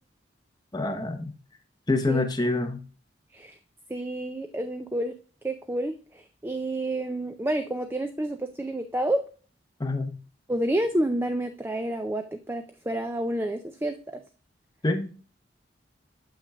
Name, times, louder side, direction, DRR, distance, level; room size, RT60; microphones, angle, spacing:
voice 1, 0.7-1.3 1.9-2.8 9.8-10.1 14.8-15.1, left 2 dB, 20° left, 6 dB, 0.8 m, -26 dB
voice 2, 3.9-5.2 5.4-9.2 10.5-14.2, right 1 dB, 10° right, 8 dB, 0.4 m, -29 dB
8.0 x 5.9 x 2.3 m, 0.37 s
head